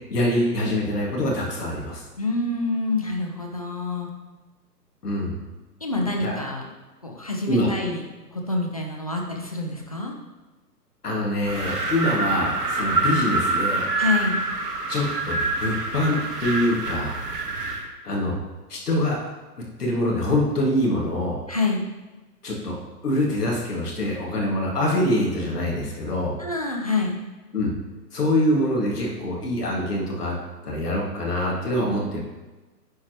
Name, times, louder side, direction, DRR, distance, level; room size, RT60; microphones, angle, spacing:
voice 1, 0.1-2.0 5.0-5.3 6.2-6.4 7.5-7.7 11.0-13.9 14.9-17.2 18.0-18.4 18.7-19.2 19.8-21.4 22.4-22.8 23.0-26.3 27.5-27.7 28.1-30.3 30.6-32.2, left 1 dB, 65° left, -2 dB, 2.4 m, -24 dB
voice 2, 2.2-4.1 5.8-6.6 7.0-8.0 8.3-10.1 13.9-14.4 21.5-21.8 26.4-27.2, left 3 dB, 25° left, 0 dB, 0.4 m, -27 dB
Wind, 11.4-17.9, right 3 dB, 70° right, 1.3 m, -26 dB
9.9 x 4.6 x 3.1 m, 1.2 s
figure-of-eight pair, 130°, 49 cm